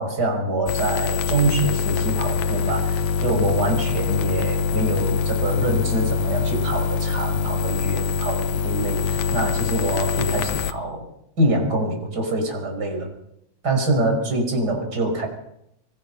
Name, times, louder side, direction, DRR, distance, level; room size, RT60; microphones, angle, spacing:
voice 1, 0.0-11.1 11.4-13.1 13.6-15.3, right 1 dB, 30° right, 2 dB, 6.1 m, -25 dB
sound 1, 0.7-10.7, left 5 dB, 70° left, 2.3 m, -24 dB
24.0 x 22.5 x 5.8 m, 0.79 s
omnidirectional pair, 3.6 m